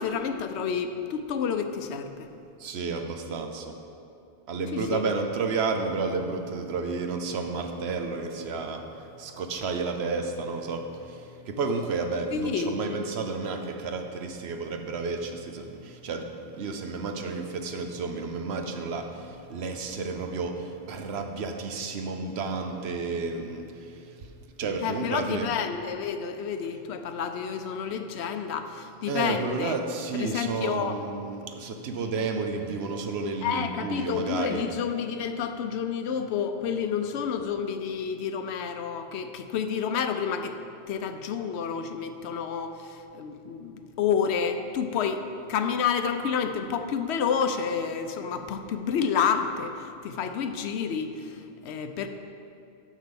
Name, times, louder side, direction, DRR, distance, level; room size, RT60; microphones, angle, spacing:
voice 1, 0.0-2.3 4.7-5.0 12.3-12.8 24.8-29.8 30.2-31.0 32.0-32.1 33.4-40.6 40.9-45.2 45.5-52.1, left 7 dB, 85° left, 8 dB, 0.9 m, -29 dB
voice 2, 2.6-3.7 4.5-16.3 16.5-24.3 24.6-25.5 29.1-34.6, right 4 dB, 80° right, 5 dB, 1.0 m, -31 dB
7.3 x 5.7 x 6.8 m, 2.6 s
omnidirectional pair, 1.1 m